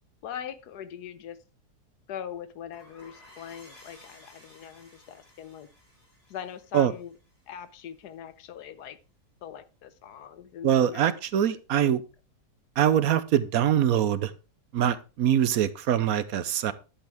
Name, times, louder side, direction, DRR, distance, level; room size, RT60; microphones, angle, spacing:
voice 1, 0.2-1.4 2.1-5.7 6.3-7.1 7.5-9.0 9.4-11.0, left 9 dB, 80° left, 14 dB, 1.4 m, -41 dB
sound 1, 2.7-8.0, left 1 dB, 45° left, 7.5 m, -55 dB
voice 2, 10.6-12.0 12.8-14.3 14.7-16.7, right 10 dB, 65° right, 15 dB, 1.1 m, -23 dB
11.5 x 8.0 x 3.5 m, 0.31 s
omnidirectional pair, 1.7 m